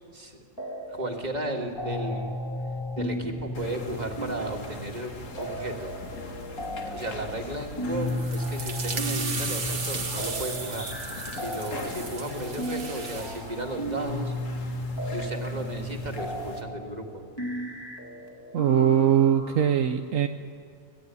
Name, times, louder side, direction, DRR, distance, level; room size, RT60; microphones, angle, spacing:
sound 1, 0.6-1.2 1.5-19.7, equal, 15° left, 2.8 m, -34 dB
voice 1, 0.9-2.3 3.0-5.9 6.8-10.9 11.3-14.3 15.1-17.2, right 1 dB, 30° right, 2 dB, 2.5 m, -34 dB
sound 2, 3.5-16.6, left 2 dB, 65° left, 2.2 m, -42 dB
sound 3, 8.0-13.4, right 4 dB, 60° right, 2.0 m, -35 dB
voice 2, 18.5-20.3, right 9 dB, 75° right, 7 dB, 1.2 m, -21 dB
26.0 x 19.0 x 9.6 m, 2.3 s
omnidirectional pair, 1.4 m